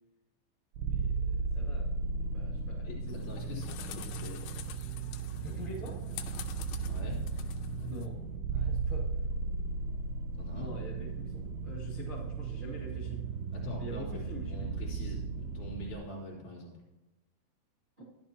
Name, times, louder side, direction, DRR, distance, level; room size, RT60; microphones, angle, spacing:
voice 1, 0.8-1.9 2.2-3.1 5.3-6.0 7.8-8.2 8.6-9.1 10.5-13.2 13.8-14.7 18.0-18.1, equal, 35° right, -7 dB, 0.8 m, -45 dB
sound 1, 0.8-16.0, right 4 dB, 85° right, 2.9 m, -35 dB
voice 2, 2.8-4.4 6.8-7.3 8.5-8.7 10.4-10.7 13.5-16.7, left 3 dB, 45° left, -7 dB, 4.1 m, -44 dB
sound 2, 3.1-8.1, left 12 dB, 85° left, 3.4 m, -47 dB
15.0 x 10.5 x 3.0 m, 1.0 s
omnidirectional pair, 5.9 m